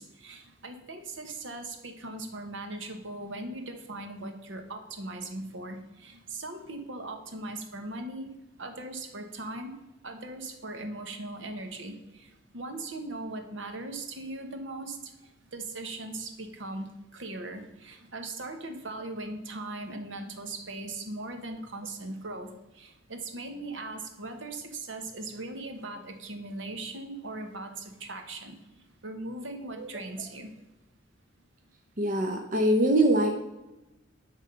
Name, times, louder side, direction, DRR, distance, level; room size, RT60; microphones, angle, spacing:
voice 1, 0.0-8.3 8.6-9.8 10.0-30.5, right 2 dB, 75° right, 5 dB, 1.2 m, -39 dB
voice 2, 32.0-33.3, right 1 dB, 45° right, 3 dB, 0.7 m, -23 dB
10.5 x 3.7 x 6.7 m, 1.0 s
head